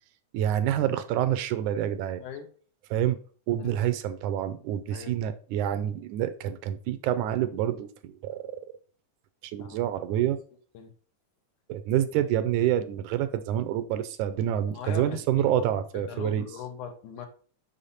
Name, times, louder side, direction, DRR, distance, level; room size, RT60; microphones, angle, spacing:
voice 1, 0.3-2.2 2.9-3.2 3.5-8.6 9.4-10.4 11.7-16.4, right 11 dB, 80° right, 2.0 m, -27 dB
voice 2, 9.6-10.3 10.7-10.9 14.7-17.3, left 8 dB, 80° left, 2.5 m, -41 dB
6.5 x 5.7 x 4.1 m
omnidirectional pair, 3.5 m